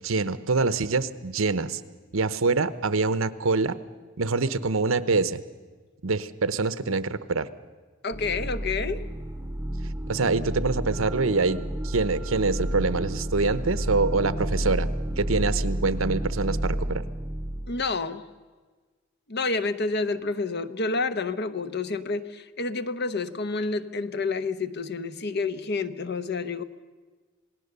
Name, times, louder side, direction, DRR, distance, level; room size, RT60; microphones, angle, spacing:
voice 1, 0.0-1.8 2.1-3.8 4.2-5.4 6.0-7.5 10.1-14.9 15.2-17.0, right 3 dB, 85° right, 14 dB, 0.9 m, -25 dB
voice 2, 8.0-9.0 17.7-18.2 19.3-26.6, left 3 dB, 55° left, 11 dB, 0.9 m, -29 dB
sound 1, 8.1-17.9, right 1 dB, 10° right, 0.8 m, -31 dB
27.0 x 18.5 x 6.9 m, 1.4 s
head